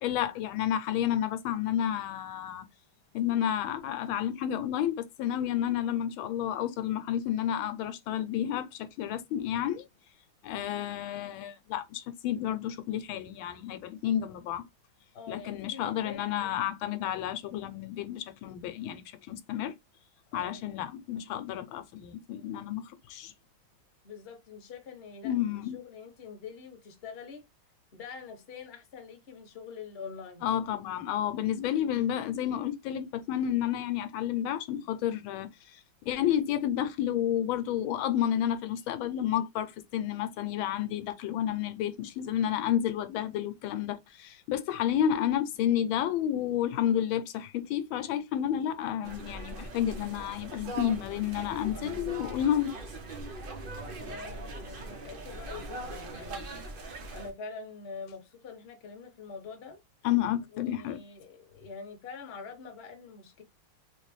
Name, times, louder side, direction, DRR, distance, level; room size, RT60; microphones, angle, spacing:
voice 1, 0.0-2.6 3.1-9.9 10.4-14.6 15.3-19.7 20.3-23.3 25.2-25.8 30.4-35.8 36.1-52.7 60.0-61.0, left 10 dB, 80° left, 1.4 m, -31 dB
voice 2, 15.1-16.5 20.3-20.6 24.0-27.4 27.9-30.5 54.0-56.6 57.1-59.8 60.5-63.4, left 5 dB, 45° left, 0.9 m, -45 dB
sound 1, 49.0-57.3, right 2 dB, 70° right, 0.5 m, -41 dB
3.2 x 2.9 x 3.1 m
omnidirectional pair, 2.2 m